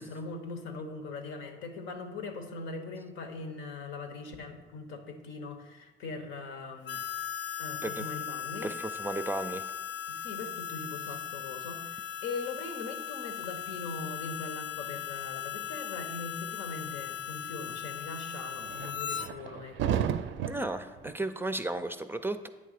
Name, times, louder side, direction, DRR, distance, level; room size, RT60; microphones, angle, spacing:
voice 1, 0.0-7.0 7.6-8.7 9.1-9.2 10.1-20.0, left 3 dB, 85° left, 5 dB, 1.0 m, -41 dB
Harmonica, 6.9-19.3, left 9 dB, 65° left, 0.5 m, -38 dB
voice 2, 8.6-9.6 20.5-22.5, right 2 dB, 10° right, 9 dB, 0.4 m, -34 dB
sound 1, 18.5-21.2, right 9 dB, 75° right, 0.4 m, -33 dB
8.6 x 3.3 x 6.6 m, 1.2 s
cardioid pair, 90°, 20 cm